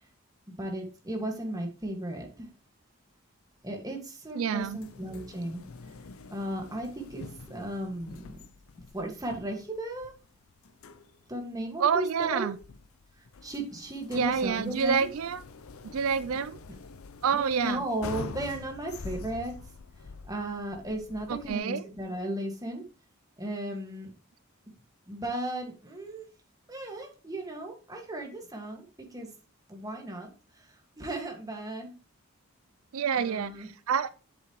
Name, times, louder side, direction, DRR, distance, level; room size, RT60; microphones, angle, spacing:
voice 1, 0.5-2.5 3.6-5.6 6.3-8.4 8.9-10.1 11.3-12.5 13.2-15.1 16.7-16.8 17.3-19.6 20.2-22.8 23.4-24.1 25.1-26.3 26.7-29.3 29.7-31.9 33.2-33.7, right 1 dB, 15° right, 1.9 m, -35 dB
voice 2, 4.3-4.8 11.8-12.6 14.1-15.4 15.9-16.6 17.2-17.8 21.3-21.8 32.9-34.1, right 7 dB, 80° right, 0.4 m, -28 dB
sound 1, 4.6-21.6, left 3 dB, 90° left, 0.7 m, -46 dB
8.3 x 7.3 x 3.1 m
head